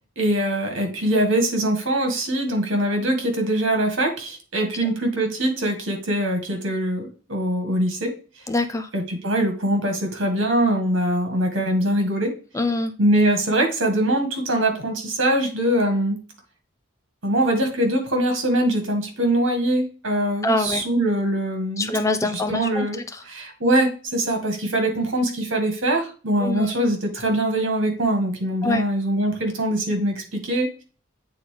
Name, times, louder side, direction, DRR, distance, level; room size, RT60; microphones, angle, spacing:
voice 1, 0.2-8.1 8.9-12.3 13.0-16.2 17.2-30.8, right 1 dB, 70° right, 4 dB, 1.9 m, -23 dB
voice 2, 8.5-8.9 12.5-12.9 20.4-20.8 21.8-22.9 26.4-26.7 28.6-28.8, left 2 dB, 15° left, 9 dB, 0.4 m, -24 dB
8.3 x 3.9 x 3.3 m, 0.38 s
head